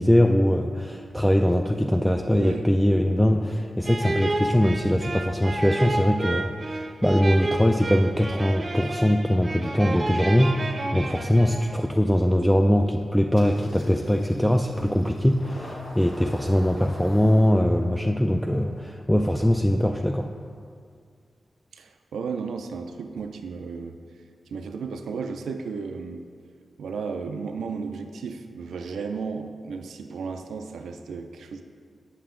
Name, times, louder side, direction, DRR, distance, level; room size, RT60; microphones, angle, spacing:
voice 1, 0.0-20.3, equal, ahead, 3 dB, 0.4 m, -22 dB
sound 1, 3.8-11.9, right 2 dB, 45° right, 0.6 m, -30 dB
Engine starting, 13.3-20.7, left 1 dB, 70° left, 1.6 m, -45 dB
voice 2, 21.7-24.0 24.5-26.2 26.8-31.6, right 5 dB, 85° right, 6 dB, 0.3 m, -34 dB
7.8 x 5.7 x 3.7 m, 2.1 s
cardioid pair, 45°, 0 cm